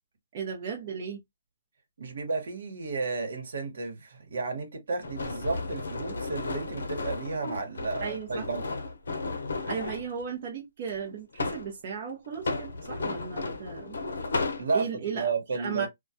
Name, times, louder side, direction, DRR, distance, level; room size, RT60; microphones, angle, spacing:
voice 1, 0.3-1.2 8.0-8.5 9.6-14.0 14.7-15.9, right 6 dB, 40° right, 0.7 m, -36 dB
voice 2, 2.0-8.7 14.6-14.9 15.1-15.9, right 4 dB, 75° right, 1.1 m, -32 dB
sound 1, 5.0-10.1 10.9-11.7 12.3-14.6, left 3 dB, 85° left, 0.6 m, -34 dB
2.2 x 2.2 x 2.6 m
hypercardioid pair, 160°, 0 cm